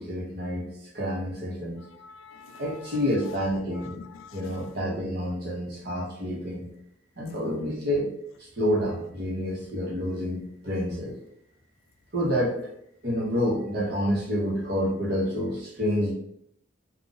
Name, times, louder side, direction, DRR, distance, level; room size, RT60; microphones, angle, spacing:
voice 1, 0.0-1.8 2.6-4.0 4.3-6.7 7.2-8.1 8.6-11.2 12.1-12.6 13.0-16.1, equal, 50° right, 1.0 m, -28 dB
voice 2, 1.9-3.0 3.7-4.7, left 5 dB, 80° left, 0.3 m, -47 dB
2.6 x 2.4 x 3.9 m
head